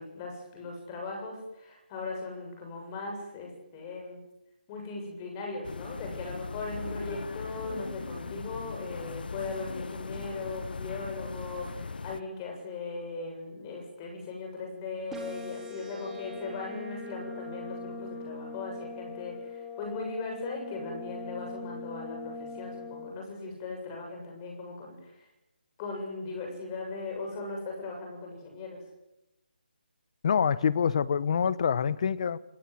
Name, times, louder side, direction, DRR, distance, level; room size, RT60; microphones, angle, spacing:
voice 1, 0.0-4.2 4.7-25.2 25.8-28.8, left 3 dB, 20° left, 7.4 m, -38 dB
sound 1, 5.6-12.2, left 4 dB, 65° left, 1.1 m, -39 dB
sound 2, 15.1-23.1, left 3 dB, 5° right, 3.3 m, -41 dB
voice 2, 30.2-32.4, left 7 dB, 40° left, 0.9 m, -26 dB
27.5 x 19.0 x 7.9 m
hypercardioid pair, 165°, 5 cm